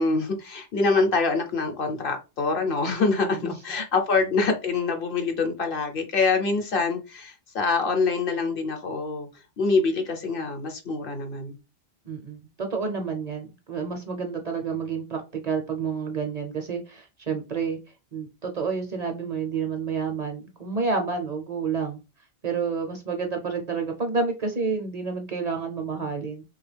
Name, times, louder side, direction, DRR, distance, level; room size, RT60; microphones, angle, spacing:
voice 1, 0.0-9.3 9.6-11.6, left 4 dB, 60° left, 1.0 m, -25 dB
voice 2, 3.2-3.6 12.0-17.8 18.1-22.0 22.4-26.4, right 5 dB, 45° right, 0.7 m, -29 dB
3.3 x 2.4 x 3.3 m
omnidirectional pair, 1.0 m